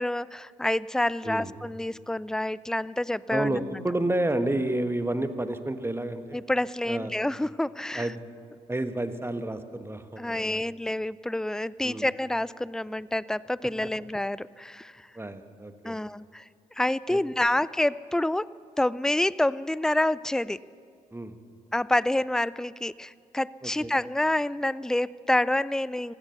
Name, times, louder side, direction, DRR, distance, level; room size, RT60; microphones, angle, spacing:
voice 1, 0.0-3.6 6.3-8.1 10.2-15.0 15.8-16.4 16.8-18.5 18.8-20.6 21.7-26.1, left 1 dB, 5° left, 21 dB, 0.3 m, -28 dB
voice 2, 3.3-6.4 6.9-7.1 7.9-8.2 8.7-10.7 11.8-12.1 15.1-16.0 17.1-17.2 21.1-21.4 23.6-23.9, right 1 dB, 15° right, 10 dB, 1.1 m, -30 dB
16.0 x 12.5 x 6.8 m, 2.2 s
hypercardioid pair, 40°, 18 cm